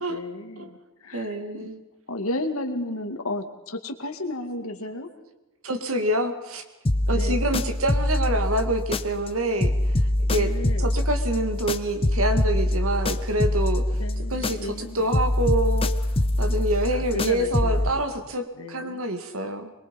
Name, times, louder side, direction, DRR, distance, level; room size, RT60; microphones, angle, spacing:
voice 1, 0.1-1.7 2.1-5.1 7.1-7.5 10.3-10.9 13.9-15.1 16.9-17.9 18.5-19.0, left 1 dB, 80° left, 5 dB, 2.4 m, -33 dB
voice 2, 1.1-1.8 5.6-6.6 7.1-9.7 10.3-10.5 10.8-13.8 14.3-15.9 16.4-19.7, right 1 dB, 75° right, 6 dB, 2.2 m, -26 dB
sound 1, 6.9-9.3 9.6-14.8 15.1-17.9, left 1 dB, 25° left, 0.8 m, -24 dB
23.5 x 23.0 x 5.4 m, 1.0 s
head